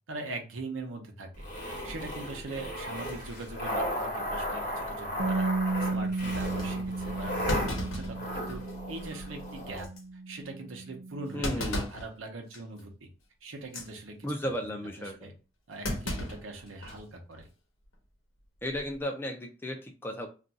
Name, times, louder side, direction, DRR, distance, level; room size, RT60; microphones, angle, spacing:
voice 1, 0.1-5.5 5.8-8.6 8.9-9.9 10.3-13.1 13.4-15.3 15.7-17.5, right 2 dB, 90° right, 4 dB, 0.8 m, -42 dB
sound 1, 1.4-9.8, equal, 45° left, 1.0 m, -35 dB
Bass guitar, 5.2-11.4, right 3 dB, 50° right, 0.4 m, -34 dB
Thump thud, 6.6-6.7 7.5-8.8 9.2-9.3 9.8-10.0 11.4-12.1 12.5-12.8 13.6-13.9 15.8-17.0 17.4-17.5 18.6-18.9, left 1 dB, 90° left, 0.9 m, -35 dB
voice 2, 11.3-11.9 14.2-15.3 18.6-20.3, equal, 10° left, 4 dB, 0.4 m, -34 dB
2.5 x 2.3 x 3.9 m, 0.33 s
head